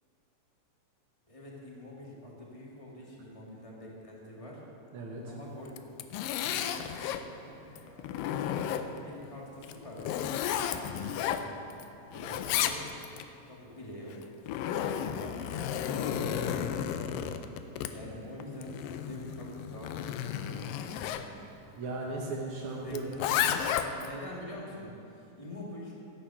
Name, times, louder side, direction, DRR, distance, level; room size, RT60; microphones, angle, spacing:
voice 1, 1.3-4.6 5.2-5.8 6.5-11.6 12.1-13.0 13.5-14.2 14.6-17.2 17.8-21.3 22.7-25.9, left 1 dB, 25° left, -3 dB, 0.7 m, -46 dB
voice 2, 4.9-5.4 16.1-16.4 21.8-23.3, right 3 dB, 65° right, -3 dB, 1.5 m, -37 dB
Zipper (clothing), 5.7-7.3 7.8-9.1 9.6-11.8 12.1-13.2 14.1-21.3 22.9-24.1, left 10 dB, 90° left, 2.3 m, -33 dB
14.0 x 9.4 x 5.8 m, 2.7 s
omnidirectional pair, 3.9 m